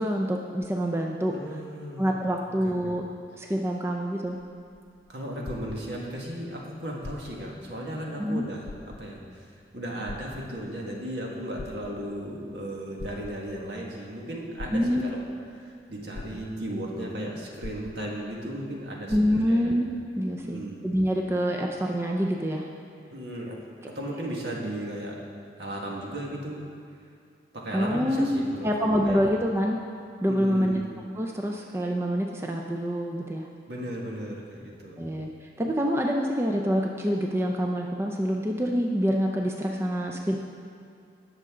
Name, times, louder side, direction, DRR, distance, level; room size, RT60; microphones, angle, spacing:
voice 1, 0.0-1.3 2.0-3.0 3.4-4.4 8.2-8.4 14.7-15.1 19.1-19.9 20.2-22.7 27.7-29.8 30.2-30.8 31.2-33.5 35.0-35.3 35.6-40.4, equal, 15° right, 1 dB, 0.5 m, -26 dB
voice 2, 1.3-2.1 2.6-2.9 5.1-9.4 9.7-15.2 15.6-19.7 20.4-20.9 23.1-23.6 23.9-25.2 25.6-26.7 27.5-28.7 29.1-29.2 30.3-30.8 33.7-35.1, right 1 dB, 65° right, -2 dB, 1.8 m, -35 dB
sound 1, 4.4-6.3 6.9-7.6 8.0-8.1 8.6-9.3 10.1-10.9 11.4-12.3 13.0-13.7 14.6-15.3 15.8-15.9 16.1-16.9 17.6-18.4 18.7-18.8 19.1-19.7 20.4-20.5, left 3 dB, 55° left, 0.4 m, -42 dB
18.5 x 6.6 x 3.7 m, 2.4 s
head